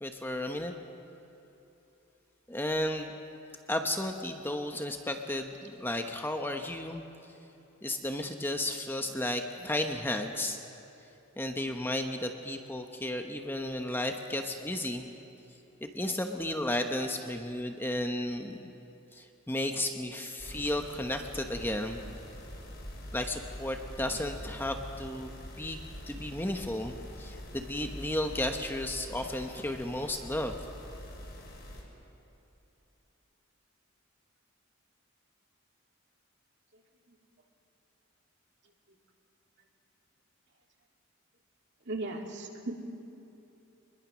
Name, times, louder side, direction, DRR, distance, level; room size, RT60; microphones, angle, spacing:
voice 1, 0.0-0.7 2.5-3.1 3.7-7.0 7.8-10.6 11.4-15.1 15.8-18.7 19.1-22.0 23.1-30.6, left 1 dB, 10° left, 4 dB, 1.0 m, -33 dB
sound 1, 20.4-31.8, equal, 55° left, 5.0 m, -45 dB
voice 2, 41.9-42.7, right 2 dB, 55° right, 2 dB, 2.4 m, -37 dB
24.5 x 21.0 x 6.3 m, 3.0 s
head